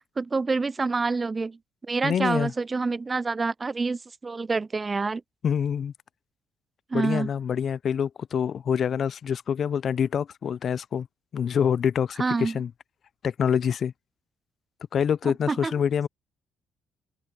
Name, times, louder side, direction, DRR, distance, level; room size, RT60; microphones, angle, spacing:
voice 1, 0.2-1.6 1.9-5.2 6.9-7.3 12.2-12.6 15.2-15.7, right 4 dB, 30° right, 0.3 m, -27 dB
voice 2, 2.0-2.5 5.4-5.9 6.9-11.1 11.3-12.7 13.2-13.9 14.9-16.1, left 8 dB, 55° left, 0.5 m, -26 dB
supercardioid pair, 65°, 0 cm